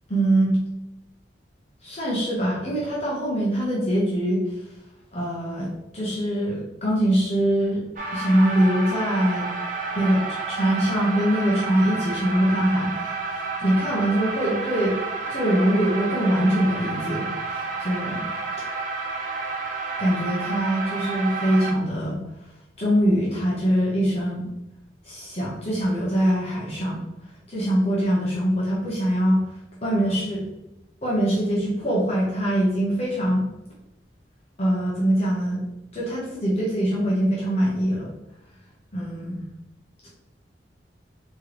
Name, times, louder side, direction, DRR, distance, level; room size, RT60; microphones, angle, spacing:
voice 1, 0.1-0.6 1.8-4.4 5.1-7.8 8.1-9.5 10.0-10.2 10.5-14.9 15.3-18.3 20.0-22.2 22.8-24.5 25.0-27.0 27.5-29.4 29.8-30.4 31.0-33.4 34.6-35.6 35.9-38.1 38.9-39.5, right 1 dB, 35° left, -6 dB, 1.1 m, -23 dB
sound 1, 8.0-21.7, right 3 dB, 50° right, 0.8 m, -30 dB
4.4 x 3.2 x 3.1 m, 0.91 s
head